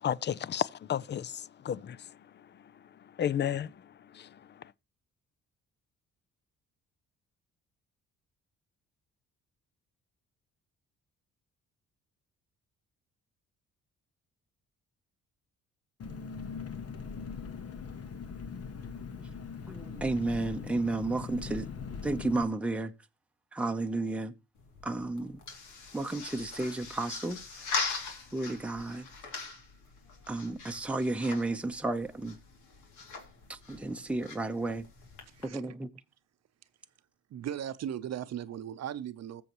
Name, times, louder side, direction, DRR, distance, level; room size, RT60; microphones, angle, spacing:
voice 1, 0.0-2.2 3.2-3.7 4.1-4.4, left 9 dB, 35° left, 0.5 m, -32 dB
Engine, 16.0-22.4, left 5 dB, 55° left, 1.2 m, -41 dB
voice 2, 19.7-21.7 22.0-22.9 23.5-24.3 24.8-25.4 25.9-27.4 28.3-29.1 30.3-32.4 33.5-34.9 35.4-35.9, right 2 dB, 5° right, 0.8 m, -32 dB
sound 1, 24.5-35.5, left 4 dB, 75° left, 2.6 m, -41 dB
voice 3, 35.3-35.7 37.3-39.4, right 10 dB, 60° right, 0.7 m, -38 dB
20.0 x 7.0 x 3.0 m
cardioid pair, 90°, 30 cm